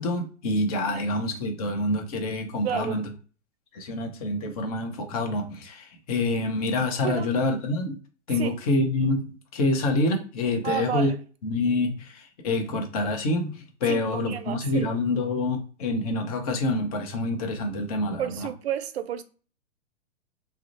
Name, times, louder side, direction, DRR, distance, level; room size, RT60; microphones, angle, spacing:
voice 1, 0.0-3.0 3.7-8.0 8.3-11.1 11.4-18.5, left 2 dB, 30° left, 0.6 m, -27 dB
voice 2, 2.6-3.1 7.0-7.3 8.4-8.5 10.6-11.2 13.9-14.9 18.2-19.2, right 9 dB, 60° right, 0.5 m, -31 dB
2.3 x 2.0 x 2.8 m
figure-of-eight pair, 115°, 36 cm